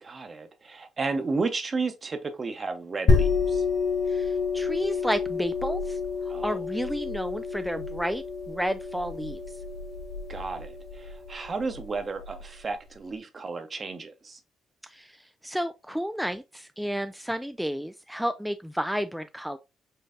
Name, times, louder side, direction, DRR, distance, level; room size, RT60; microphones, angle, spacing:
voice 1, 0.0-3.6 6.3-6.6 10.3-14.4, right 4 dB, 35° right, 0.9 m, -33 dB
sound 1, 3.1-12.4, left 4 dB, 55° left, 1.9 m, -28 dB
voice 2, 4.1-6.0 6.4-9.4 14.8-19.6, equal, ahead, 0.3 m, -31 dB
5.7 x 3.2 x 2.6 m
cardioid pair, 90°, 0 cm